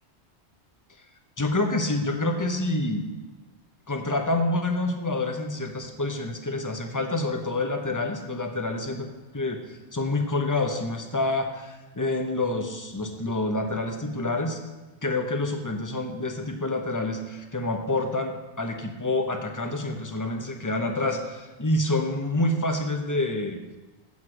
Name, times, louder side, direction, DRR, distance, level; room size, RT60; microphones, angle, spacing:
voice 1, 1.4-3.0 3.9-9.1 9.3-14.6 15.0-23.6, left 2 dB, 20° left, 4 dB, 0.8 m, -27 dB
8.2 x 7.4 x 6.0 m, 1.2 s
omnidirectional pair, 1.1 m